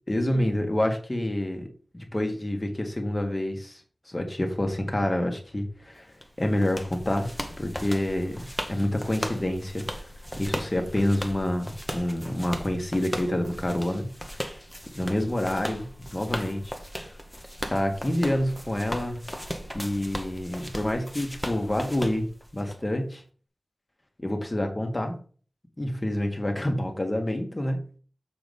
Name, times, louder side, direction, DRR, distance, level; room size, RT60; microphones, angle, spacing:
voice 1, 0.1-1.7 1.9-3.8 4.1-6.1 6.4-7.3 7.6-9.9 10.4-14.1 14.9-16.7 17.7-19.2 19.7-22.3 22.5-23.2 24.2-25.2 25.8-28.0, left 1 dB, 25° left, 4 dB, 1.6 m, -27 dB
sound 1, 6.2-22.8, equal, 5° left, 1.0 m, -37 dB
7.0 x 4.0 x 5.2 m, 0.41 s
wide cardioid pair, 80°, 0 cm